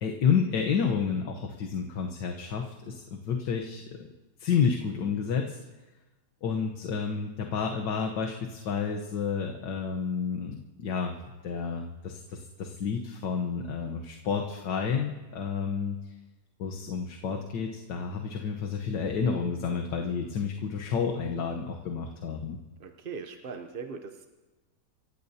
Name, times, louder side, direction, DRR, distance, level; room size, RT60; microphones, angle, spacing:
voice 1, 0.0-4.1 4.4-5.6 6.4-11.1 11.4-16.0 16.6-22.6, left 6 dB, 80° left, 2 dB, 1.7 m, -30 dB
voice 2, 22.8-24.3, right 5 dB, 50° right, 5 dB, 0.6 m, -40 dB
29.0 x 15.5 x 2.8 m, 1.2 s
omnidirectional pair, 1.9 m